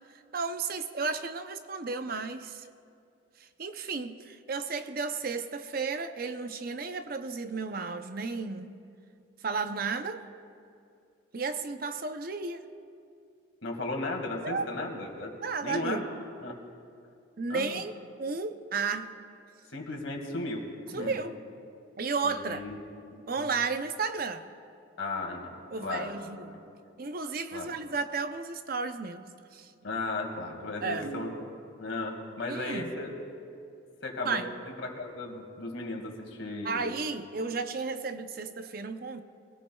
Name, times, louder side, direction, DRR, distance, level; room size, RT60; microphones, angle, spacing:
voice 1, 0.3-2.7 3.4-8.7 9.4-10.2 11.3-12.7 14.4-14.7 15.4-16.0 17.4-17.9 18.2-19.1 20.9-21.4 22.0-22.6 23.3-24.4 25.7-26.6 27.0-29.7 30.8-31.4 32.5-32.9 34.2-34.5 36.6-39.2, right 4 dB, 45° right, 9 dB, 0.6 m, -33 dB
voice 2, 13.6-15.3 15.6-16.0 16.4-16.6 17.5-17.8 19.7-21.2 22.2-22.8 23.4-23.5 25.0-25.5 25.8-26.1 26.4-26.6 27.5-27.7 29.8-31.3 31.8-33.1 34.0-34.5 34.8-37.0, left 2 dB, 70° left, 2 dB, 2.0 m, -35 dB
23.0 x 17.5 x 2.3 m, 2.5 s
head